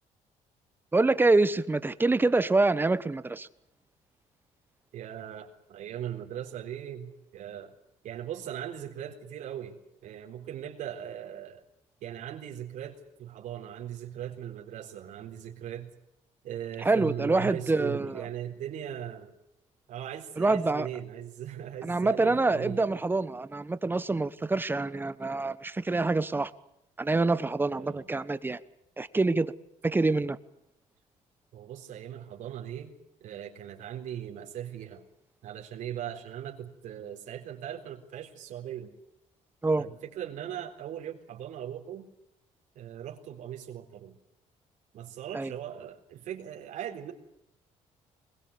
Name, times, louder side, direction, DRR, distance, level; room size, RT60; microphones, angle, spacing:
voice 1, 0.9-3.5 16.8-18.2 20.4-20.9 21.8-26.5 27.0-28.6 29.0-29.5 29.8-30.4 39.6-39.8 45.3-45.5, right 3 dB, 15° right, 14 dB, 1.1 m, -26 dB
voice 2, 4.9-7.7 8.0-11.6 12.0-15.9 16.4-19.3 19.9-23.0 27.7-28.1 31.5-32.9 33.2-35.0 35.4-38.9 39.8-42.1 42.8-44.2 44.9-47.1, right 10 dB, 75° right, 0 dB, 3.9 m, -39 dB
22.0 x 21.5 x 8.5 m, 0.82 s
cardioid pair, 110°, 13 cm